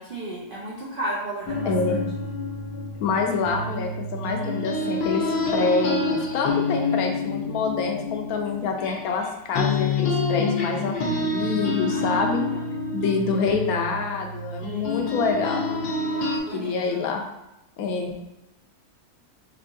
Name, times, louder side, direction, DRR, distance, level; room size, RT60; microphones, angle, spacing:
voice 1, 0.0-1.7 2.2-2.3 11.9-12.1 14.7-15.1 16.0-16.7, right 1 dB, 70° right, -4 dB, 0.5 m, -34 dB
sound 1, 1.5-9.3 9.5-16.4, left 3 dB, 85° left, 1.3 m, -27 dB
voice 2, 1.6-2.0 3.0-5.3 5.5-12.4 12.9-15.6 16.5-17.2 17.8-18.1, left 4 dB, 70° left, 2 dB, 1.0 m, -26 dB
4.4 x 2.9 x 2.6 m, 0.90 s
omnidirectional pair, 1.7 m